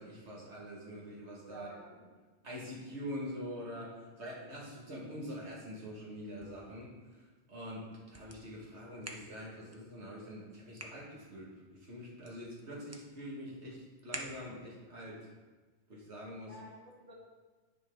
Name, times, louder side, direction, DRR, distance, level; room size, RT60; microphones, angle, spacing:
voice 1, 0.0-1.7 2.4-7.2 7.5-7.8 8.1-15.2 15.9-16.5, equal, 75° right, -4 dB, 1.9 m, -45 dB
voice 2, 1.5-2.0 16.5-17.1, equal, 35° right, -4 dB, 1.9 m, -52 dB
sound 1, 6.1-14.8, right 1 dB, 15° right, 0.7 m, -52 dB
10.5 x 5.7 x 3.6 m, 1.3 s
omnidirectional pair, 1.2 m